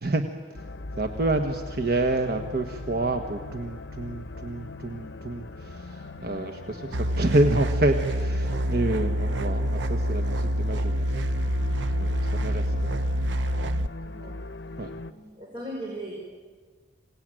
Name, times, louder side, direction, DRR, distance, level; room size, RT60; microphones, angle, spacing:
sound 1, 0.5-15.1, left 2 dB, 70° left, 0.8 m, -40 dB
voice 1, 1.0-11.1 12.0-12.7 14.8-14.9, right 2 dB, 55° right, 5 dB, 1.3 m, -28 dB
sound 2, 6.9-13.9, equal, 75° right, 0.8 m, -26 dB
voice 2, 14.0-14.3 15.1-16.1, right 1 dB, 30° right, -3 dB, 4.8 m, -38 dB
26.5 x 18.5 x 9.1 m, 1.5 s
head